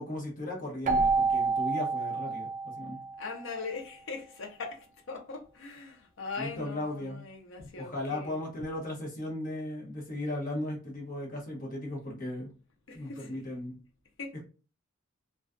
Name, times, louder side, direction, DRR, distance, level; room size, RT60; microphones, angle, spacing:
voice 1, 0.0-3.0 6.4-7.2 7.8-12.5 12.9-13.8, left 1 dB, 40° left, 0.8 m, -36 dB
Keyboard (musical), 0.8-3.5, right 4 dB, 35° right, 0.4 m, -29 dB
voice 2, 3.2-8.4 12.9-13.4 14.2-14.3, left 4 dB, 65° left, 0.5 m, -40 dB
2.3 x 2.2 x 2.4 m
head